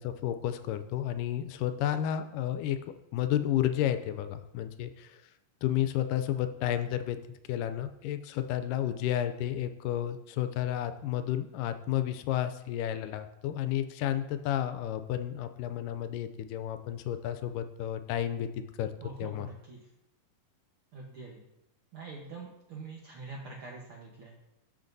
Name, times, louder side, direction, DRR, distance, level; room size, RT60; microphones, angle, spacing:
voice 1, 0.0-2.8 3.1-5.3 5.6-7.2 7.5-18.9 19.2-19.5, left 11 dB, 85° left, 10 dB, 2.1 m, -31 dB
voice 2, 19.0-19.8 20.9-21.5 21.9-24.3, right 3 dB, 75° right, -2 dB, 1.3 m, -44 dB
13.5 x 5.7 x 2.6 m, 0.86 s
omnidirectional pair, 3.8 m